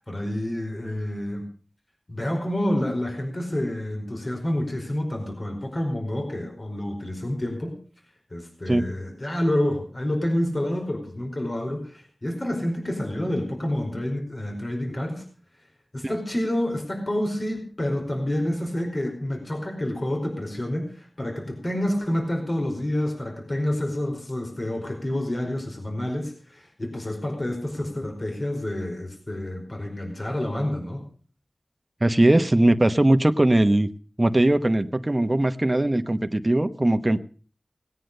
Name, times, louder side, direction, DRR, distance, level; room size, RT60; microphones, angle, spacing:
voice 1, 0.0-1.4 2.1-7.8 8.3-15.2 15.9-31.0, left 1 dB, 40° left, 2 dB, 4.9 m, -28 dB
voice 2, 32.0-33.9 34.2-37.2, right 1 dB, 30° right, 8 dB, 1.0 m, -20 dB
19.0 x 9.3 x 6.7 m, 0.41 s
wide cardioid pair, 60°, 0 cm